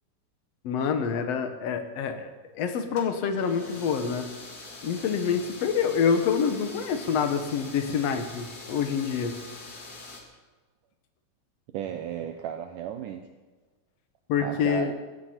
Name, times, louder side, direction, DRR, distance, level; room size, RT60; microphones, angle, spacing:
voice 1, 0.6-4.3 4.8-9.3 14.3-14.9, left 6 dB, 65° left, 7 dB, 1.6 m, -27 dB
sound 1, 2.9-10.2, left 3 dB, 30° left, 2.1 m, -44 dB
voice 2, 11.7-13.2 14.4-14.9, right 9 dB, 75° right, 6 dB, 2.1 m, -34 dB
17.5 x 15.5 x 4.4 m, 1.3 s
omnidirectional pair, 4.3 m